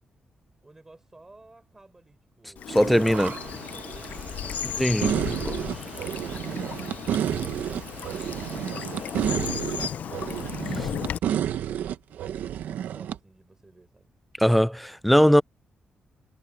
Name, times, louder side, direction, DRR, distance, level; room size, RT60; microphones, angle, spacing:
voice 1, 0.6-2.9 3.7-8.9 9.5-11.8 12.0-14.1, right 2 dB, 15° right, 6.7 m, -54 dB
Bird vocalization bird call bird song / Stream, 2.6-11.2, left 9 dB, 65° left, 0.5 m, -35 dB
voice 2, 2.7-3.4 4.8-5.5 14.4-15.4, equal, ahead, 0.4 m, -20 dB
sound 1, 2.7-9.5, right 7 dB, 55° right, 1.5 m, -42 dB
sound 2, 5.0-13.2, right 10 dB, 90° right, 0.9 m, -30 dB
cardioid pair, 135°, 3 cm